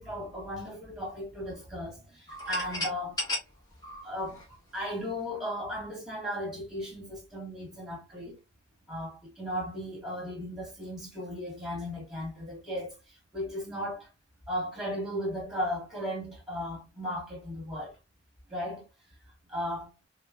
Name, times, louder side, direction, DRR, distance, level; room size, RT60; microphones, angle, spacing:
voice 1, 0.0-3.2 4.0-4.4 4.7-8.4 8.9-12.9 13.3-14.1 14.5-17.9 18.5-18.8 19.5-19.9, equal, ahead, 1.6 m, -36 dB
sound 1, 2.3-5.0, left 1 dB, 20° left, 1.2 m, -35 dB
5.1 x 2.1 x 2.3 m
head